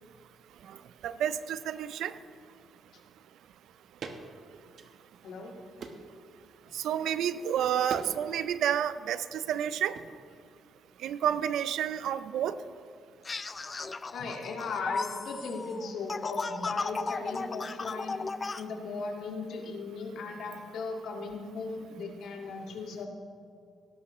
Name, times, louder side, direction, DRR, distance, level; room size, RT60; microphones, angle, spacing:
voice 1, 1.0-2.1 6.7-10.0 11.0-12.5, right 9 dB, 80° right, 14 dB, 0.5 m, -30 dB
sound 1, 4.0-4.2 4.7-5.3 5.8-6.2 7.9-8.1 8.4-8.9 9.9-10.1, right 5 dB, 60° right, 1.1 m, -42 dB
sound 2, 13.2-18.6, left 4 dB, 30° left, 0.5 m, -35 dB
voice 2, 14.1-18.2 18.6-23.1, left 4 dB, 75° left, 1 dB, 2.0 m, -37 dB
18.5 x 11.0 x 3.1 m, 2.3 s
cardioid pair, 90°, 0 cm